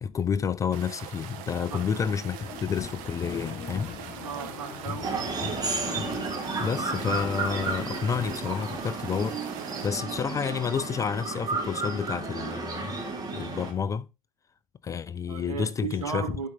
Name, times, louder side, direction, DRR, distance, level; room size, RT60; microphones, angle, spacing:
voice 1, 0.0-3.9 6.6-13.0 13.3-14.1 14.8-16.2, left 6 dB, 15° left, 0.4 m, -30 dB
sound 1, 0.7-9.9, right 10 dB, 50° right, 1.3 m, -43 dB
sound 2, 2.4-8.8, left 6 dB, 35° left, 5.7 m, -40 dB
voice 2, 4.2-5.3 15.3-16.5, right 6 dB, 75° right, 2.3 m, -35 dB
sound 3, 5.0-13.7, right 3 dB, 20° right, 2.1 m, -32 dB
12.0 x 4.5 x 3.6 m
figure-of-eight pair, 80°, 19 cm